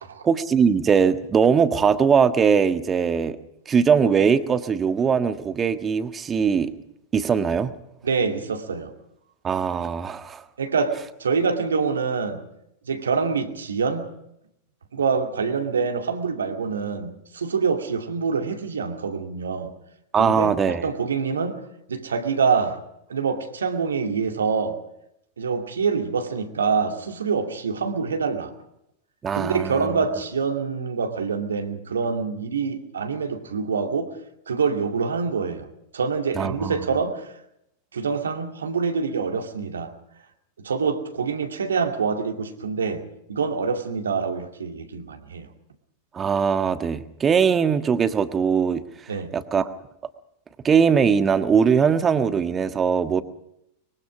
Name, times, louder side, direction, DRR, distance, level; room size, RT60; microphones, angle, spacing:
voice 1, 0.2-3.4 3.7-6.7 7.1-7.7 9.4-10.4 20.1-20.8 29.2-29.9 36.3-36.8 46.1-48.8 49.3-49.7 50.6-53.2, right 6 dB, 20° right, 10 dB, 1.5 m, -20 dB
voice 2, 8.0-8.9 10.6-12.4 12.9-14.1 14.9-19.7 20.2-21.6 21.9-22.8 23.1-24.8 25.4-28.5 29.3-34.1 34.5-35.7 35.9-37.3 37.9-39.9 40.6-43.0 43.3-45.5 49.1-49.3, right 5 dB, 70° right, 4 dB, 2.4 m, -25 dB
24.0 x 23.0 x 5.0 m, 0.81 s
figure-of-eight pair, 90°, 0 cm